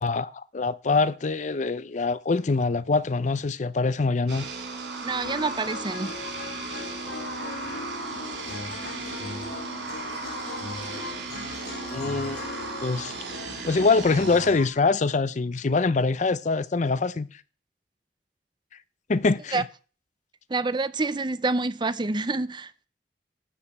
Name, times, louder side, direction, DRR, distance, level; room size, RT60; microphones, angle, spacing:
voice 1, 0.0-4.4 11.9-12.4 12.8-13.1 13.6-17.3 19.1-19.6, left 3 dB, 45° left, 0.5 m, -24 dB
sound 1, 4.3-14.5, right 4 dB, 85° right, 2.9 m, -36 dB
voice 2, 5.0-6.1 19.5-19.6 20.5-22.9, right 3 dB, 25° right, 0.6 m, -27 dB
sound 2, 5.1-14.7, left 3 dB, 65° left, 1.4 m, -38 dB
12.5 x 5.0 x 8.6 m
head